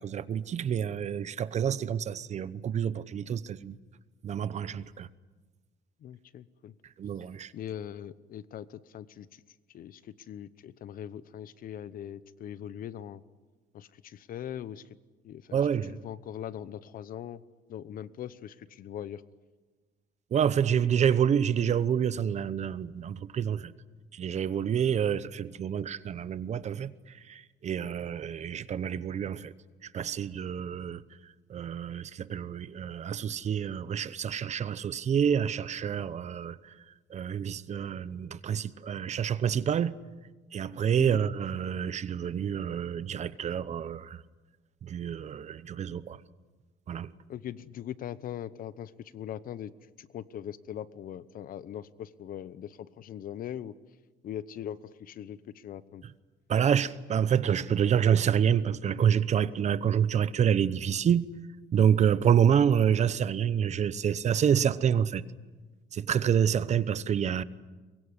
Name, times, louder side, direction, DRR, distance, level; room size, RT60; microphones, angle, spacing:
voice 1, 0.0-3.8 4.2-5.1 7.0-7.5 15.5-16.0 20.3-23.7 24.1-26.9 27.3-29.5 29.8-31.0 31.5-36.7 37.1-40.0 40.5-44.2 44.8-46.2 46.9-47.1 56.5-61.3 61.7-65.2 65.9-67.4, right 8 dB, 40° right, 0.9 m, -27 dB
voice 2, 6.0-6.7 7.5-9.4 9.7-13.2 13.7-15.0 15.2-17.4 17.7-19.2 41.0-41.2 47.3-49.7 50.0-53.8 54.2-56.0, left 10 dB, 55° left, 1.0 m, -41 dB
23.5 x 22.5 x 9.8 m
cardioid pair, 135°, 18 cm